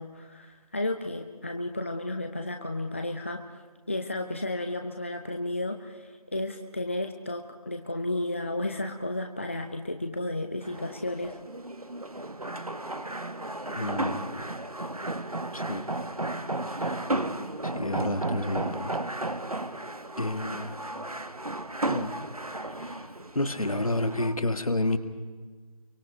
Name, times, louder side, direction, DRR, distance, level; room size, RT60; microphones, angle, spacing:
voice 1, 0.0-11.4, left 1 dB, 20° left, 5 dB, 0.7 m, -33 dB
sound 1, 10.6-24.3, right 2 dB, 75° right, 2.0 m, -34 dB
voice 2, 13.8-14.4 15.5-15.8 16.7-17.0 17.6-18.9 20.2-20.8 21.9-22.1 22.6-23.1 23.3-25.0, left 1 dB, 65° left, 9 dB, 2.1 m, -30 dB
25.5 x 24.0 x 5.1 m, 1.4 s
figure-of-eight pair, 165°, 19 cm